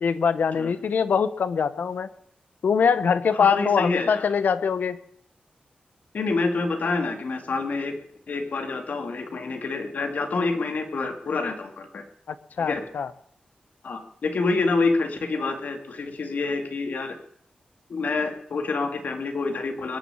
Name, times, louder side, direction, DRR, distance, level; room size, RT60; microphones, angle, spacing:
voice 1, 0.0-2.1 2.6-5.0 12.3-13.1, left 6 dB, 90° left, 14 dB, 1.0 m, -23 dB
voice 2, 3.3-4.3 6.1-8.0 8.3-12.0 12.6-12.8 13.8-17.2 17.9-20.0, left 3 dB, 70° left, 6 dB, 2.1 m, -27 dB
21.0 x 7.2 x 8.8 m, 0.64 s
wide cardioid pair, 175°, 3 cm